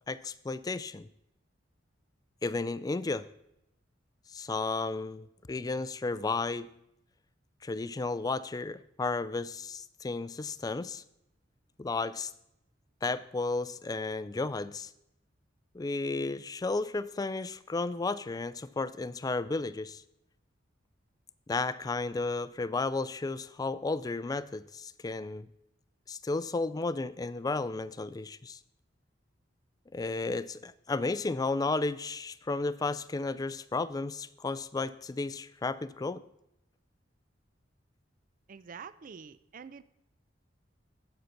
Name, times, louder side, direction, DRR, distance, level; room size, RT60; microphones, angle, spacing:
voice 1, 0.1-1.1 2.4-3.2 4.3-6.7 7.6-11.0 11.8-12.3 13.0-14.9 15.7-20.0 21.5-25.5 26.1-28.6 29.9-36.2, left 3 dB, 20° left, 15 dB, 0.3 m, -33 dB
voice 2, 38.5-39.8, right 6 dB, 45° right, 16 dB, 0.4 m, -46 dB
8.1 x 7.8 x 5.8 m, 0.81 s
head